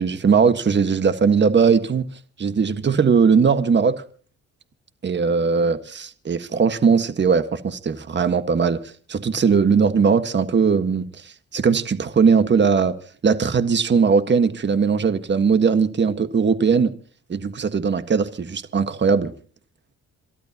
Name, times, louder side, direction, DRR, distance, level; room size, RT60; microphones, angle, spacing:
voice 1, 0.0-2.0 2.4-3.9 5.0-8.8 9.1-12.9 13.2-16.9 17.3-19.3, right 5 dB, 35° right, 1.6 m, -19 dB
27.5 x 12.0 x 2.9 m
cardioid pair, 90°, 30 cm